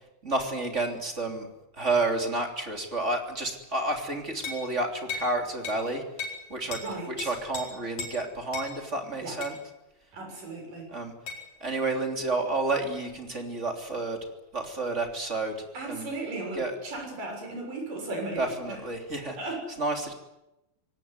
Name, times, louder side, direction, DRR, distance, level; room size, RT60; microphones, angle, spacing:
voice 1, 0.2-1.5 1.8-6.0 6.5-6.8 7.1-9.5 10.9-11.1 11.6-14.2 14.5-15.5 15.9-16.1 16.5-16.8 18.4-19.4 19.7-20.1, right 2 dB, 20° right, 3 dB, 3.1 m, -30 dB
sound 1, 4.4-4.7 5.1-5.3 5.6-5.8 6.2-6.4 6.7-6.9 7.2-7.6 8.0-8.2 8.5-8.7 9.4-9.6 11.3-11.4, left 4 dB, 45° left, 5.7 m, -35 dB
voice 2, 6.6-7.3 9.2-9.4 10.1-10.9 15.7-18.8 19.4-19.6, right 2 dB, 55° right, 2 dB, 8.3 m, -36 dB
25.5 x 18.0 x 9.5 m, 0.93 s
omnidirectional pair, 4.4 m